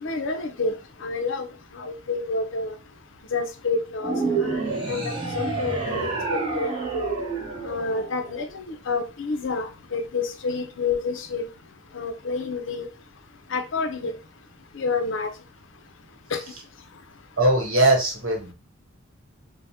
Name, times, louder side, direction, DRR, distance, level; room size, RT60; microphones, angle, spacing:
voice 1, 0.0-0.7 1.0-1.5 1.7-2.8 3.3-4.1 4.4-6.7 7.7-11.5 11.9-12.9 13.5-14.1 14.8-15.3 16.3-16.4, left 4 dB, 60° left, 0.5 m, -28 dB
sound 1, 4.0-8.5, right 3 dB, 20° right, 0.9 m, -28 dB
voice 2, 17.4-18.5, right 2 dB, 65° right, 1.0 m, -20 dB
3.3 x 2.1 x 2.7 m
head